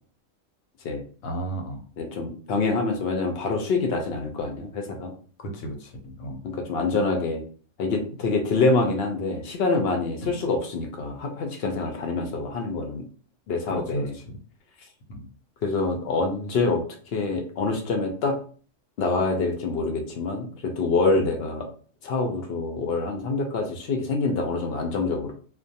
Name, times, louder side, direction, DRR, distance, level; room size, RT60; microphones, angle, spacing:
voice 1, 1.2-1.8 5.4-6.4 10.2-10.4 13.7-14.3 15.1-15.3 21.2-21.3, right 1 dB, 90° left, 4 dB, 1.0 m, -34 dB
voice 2, 2.0-5.1 6.4-7.4 7.8-13.0 13.5-14.1 15.6-16.8 17.1-18.4 19.0-21.6 22.0-25.3, left 3 dB, 65° left, 3 dB, 0.6 m, -26 dB
2.3 x 2.2 x 2.7 m, 0.41 s
omnidirectional pair, 1.4 m